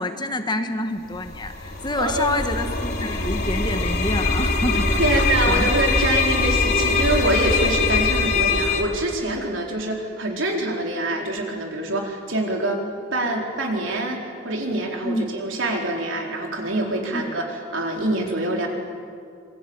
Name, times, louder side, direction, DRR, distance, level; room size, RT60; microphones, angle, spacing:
voice 1, 0.0-5.7 15.0-15.3 17.1-17.3, left 1 dB, 25° left, 7 dB, 1.4 m, -28 dB
sound 1, 1.1-8.8, left 3 dB, 50° left, 3.3 m, -22 dB
voice 2, 2.0-2.5 5.0-12.8 13.1-18.7, right 2 dB, 70° right, 1 dB, 4.4 m, -25 dB
27.5 x 21.5 x 8.9 m, 2.3 s
head